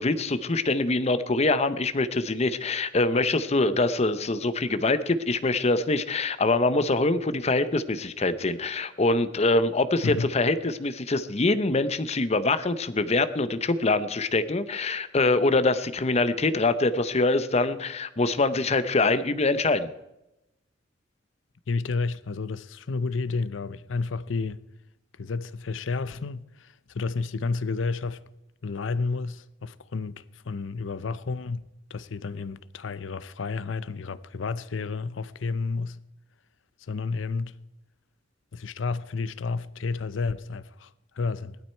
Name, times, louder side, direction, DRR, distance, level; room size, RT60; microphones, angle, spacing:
voice 1, 0.0-19.9, left 2 dB, 35° left, 0.7 m, -24 dB
voice 2, 10.0-10.3 21.7-24.6 25.2-28.2 28.6-31.6 31.9-36.0 36.9-37.6 38.5-41.6, left 4 dB, 85° left, 0.6 m, -31 dB
16.0 x 12.0 x 4.5 m
head